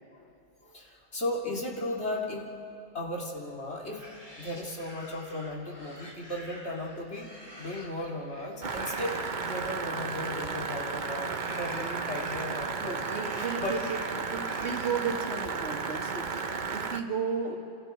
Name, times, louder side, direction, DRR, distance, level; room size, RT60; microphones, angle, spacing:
voice 1, 0.7-2.5 2.9-4.0 4.4-7.3 7.6-9.2 9.4-13.7, left 1 dB, 75° left, -2 dB, 3.1 m, -36 dB
sound 1, 3.7-15.8, equal, 20° left, 3.1 m, -49 dB
sound 2, 8.6-17.0, right 5 dB, 45° right, 1.0 m, -34 dB
voice 2, 12.8-14.0 14.3-17.6, right 5 dB, 75° right, 1 dB, 2.5 m, -34 dB
29.5 x 28.0 x 4.5 m, 2.6 s
omnidirectional pair, 1.1 m